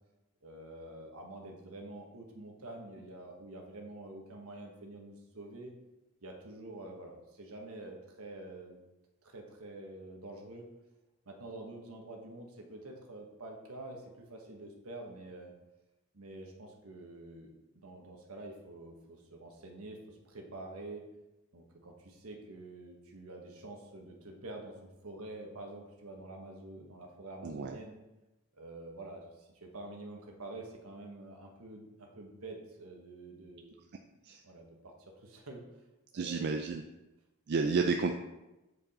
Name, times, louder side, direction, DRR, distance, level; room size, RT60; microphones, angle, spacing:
voice 1, 0.4-5.7 6.2-8.8 9.2-10.7 11.2-15.5 16.1-21.0 21.5-27.9 28.5-33.8 34.1-35.6 36.1-36.6 37.5-37.7, right 2 dB, 75° right, 1 dB, 1.3 m, -47 dB
voice 2, 27.4-27.8 34.3-34.4 36.1-36.8 37.5-38.1, right 4 dB, 50° right, 4 dB, 0.4 m, -31 dB
7.8 x 4.8 x 4.2 m, 1.0 s
head